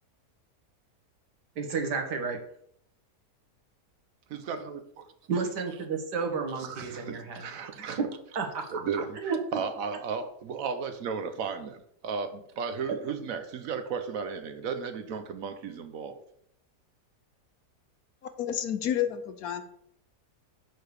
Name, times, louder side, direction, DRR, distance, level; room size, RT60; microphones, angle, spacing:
voice 1, 1.6-2.4 5.3-7.5 8.0-8.1 8.4-8.6 9.2-9.4, right 5 dB, 85° right, 4 dB, 1.8 m, -31 dB
voice 2, 4.3-5.0 6.6-8.0 8.7-16.2, right 6 dB, 65° right, 9 dB, 1.0 m, -35 dB
voice 3, 18.4-19.6, left 10 dB, 70° left, 9 dB, 1.1 m, -30 dB
6.7 x 4.6 x 4.7 m, 0.69 s
omnidirectional pair, 1.7 m